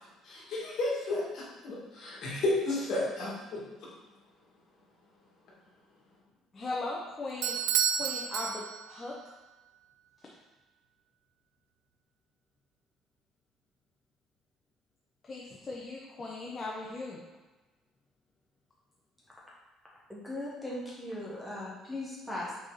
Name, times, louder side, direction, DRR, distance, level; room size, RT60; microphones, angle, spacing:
voice 1, 0.2-3.6, left 2 dB, 50° left, -5 dB, 2.0 m, -32 dB
voice 2, 6.5-7.6 7.9-9.1 15.2-17.2, left 2 dB, 25° left, -3 dB, 0.8 m, -38 dB
Bell / Doorbell, 7.4-9.1, right 9 dB, 80° right, 0.3 m, -30 dB
voice 3, 20.1-22.6, left 1 dB, ahead, -6 dB, 1.2 m, -38 dB
5.9 x 4.2 x 4.0 m, 1.2 s
cardioid pair, 155°, 0 cm